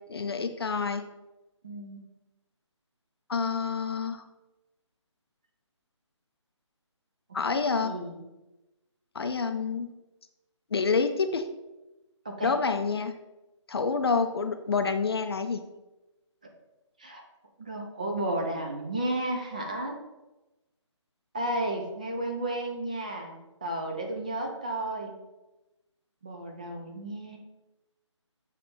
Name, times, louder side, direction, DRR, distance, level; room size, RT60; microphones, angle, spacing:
voice 1, 0.1-1.1 3.3-4.2 7.3-7.9 9.1-9.9 10.7-11.5 12.4-13.2 13.7-15.6, left 5 dB, 55° left, 7 dB, 0.5 m, -28 dB
voice 2, 1.6-2.0 7.5-8.2 12.2-12.5 17.0-17.2 17.6-19.9 21.3-25.1 26.2-27.4, right 1 dB, 15° right, 2 dB, 0.4 m, -33 dB
6.9 x 3.3 x 4.2 m, 1.0 s
figure-of-eight pair, 165°, 16 cm